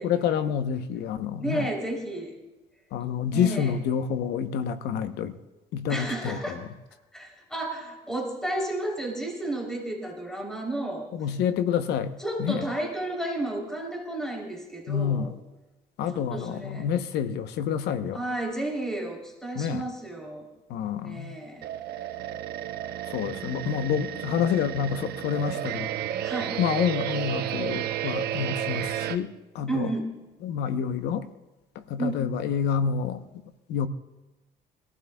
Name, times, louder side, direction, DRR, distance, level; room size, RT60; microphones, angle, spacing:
voice 1, 0.0-1.7 2.9-5.3 5.7-6.4 11.2-12.6 14.9-15.4 16.0-18.2 19.6-19.8 20.7-21.3 23.1-25.9 26.6-29.9 30.4-31.3 31.9-33.2 33.7-33.9, left 8 dB, 80° left, 10 dB, 0.9 m, -28 dB
voice 2, 1.4-2.3 3.3-3.8 5.9-6.6 7.1-11.1 12.2-15.3 16.1-16.9 18.1-20.5 21.0-21.7 26.2-26.6 29.7-30.1 32.0-32.2, right 1 dB, 5° left, -1 dB, 3.3 m, -32 dB
sound 1, 21.6-29.2, right 11 dB, 70° right, 0.8 m, -32 dB
24.5 x 15.0 x 2.3 m, 1.1 s
cardioid pair, 110°, 17 cm